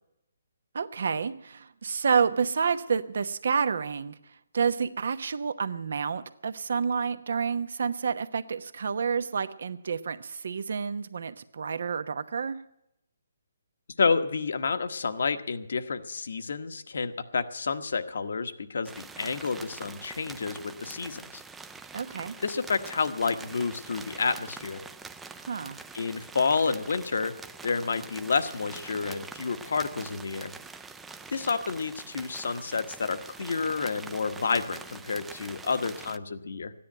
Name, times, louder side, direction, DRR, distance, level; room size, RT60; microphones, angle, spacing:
voice 1, 0.7-4.1 4.5-12.6 21.9-22.3 25.5-25.8, right 6 dB, 65° right, 12 dB, 1.0 m, -29 dB
voice 2, 14.0-21.4 22.4-24.8 25.9-27.4 27.6-30.5 31.3-36.7, left 5 dB, 70° left, 11 dB, 1.1 m, -29 dB
sound 1, 18.9-36.2, right 4 dB, 5° right, 0.5 m, -45 dB
14.0 x 10.5 x 9.0 m, 0.82 s
hypercardioid pair, 155°, 0 cm